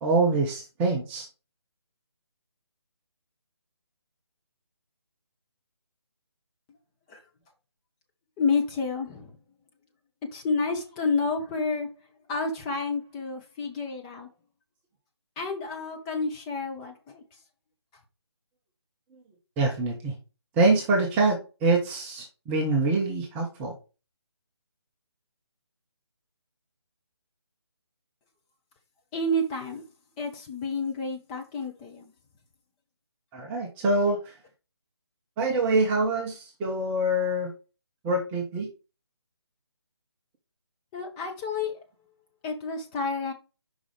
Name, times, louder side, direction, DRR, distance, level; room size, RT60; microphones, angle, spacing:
voice 1, 0.0-1.3 19.6-20.1 20.6-23.8 33.3-34.2 35.4-37.5 38.0-38.7, right 2 dB, 10° right, 0.8 m, -25 dB
voice 2, 8.4-9.3 10.3-11.9 12.3-14.3 15.4-17.2 29.1-29.9 30.2-32.1 40.9-41.7 42.4-43.3, left 3 dB, 15° left, 0.9 m, -29 dB
5.4 x 4.9 x 5.0 m
figure-of-eight pair, 150°, 14 cm